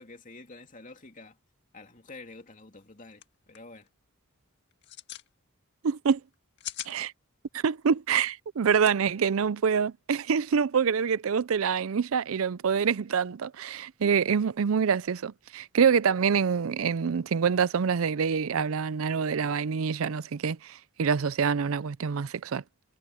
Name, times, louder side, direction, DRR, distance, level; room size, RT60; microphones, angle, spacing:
voice 1, 0.0-1.4 1.7-3.9, left 3 dB, 35° left, 2.8 m, -48 dB
sound 1, 2.8-2.9 3.1-3.2 3.6-3.9 4.7-5.3 6.3-6.9 8.7-8.9, left 12 dB, 55° left, 1.7 m, -40 dB
voice 2, 5.8-6.2 6.9-7.1 7.5-22.6, right 6 dB, 70° right, 0.5 m, -26 dB
head